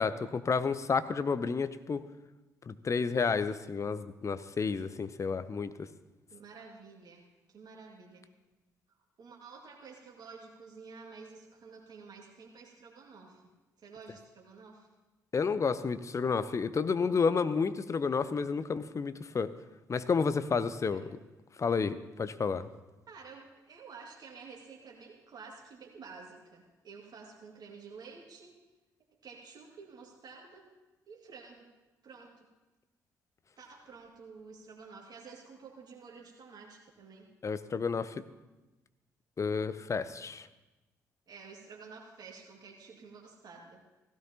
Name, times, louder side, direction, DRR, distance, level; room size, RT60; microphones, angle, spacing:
voice 1, 0.0-2.1 2.7-5.9 15.3-19.5 19.9-21.1 21.6-22.7 37.4-38.1 39.4-40.5, left 5 dB, 35° left, 13 dB, 0.7 m, -31 dB
voice 2, 6.3-8.3 9.2-13.4 13.8-14.9 20.9-21.0 23.1-28.6 29.2-30.7 31.1-31.7 32.0-32.5 33.6-37.3 41.3-43.8, right 5 dB, 45° right, -1 dB, 2.2 m, -51 dB
17.5 x 16.0 x 2.9 m, 1.1 s
figure-of-eight pair, 45°, 9 cm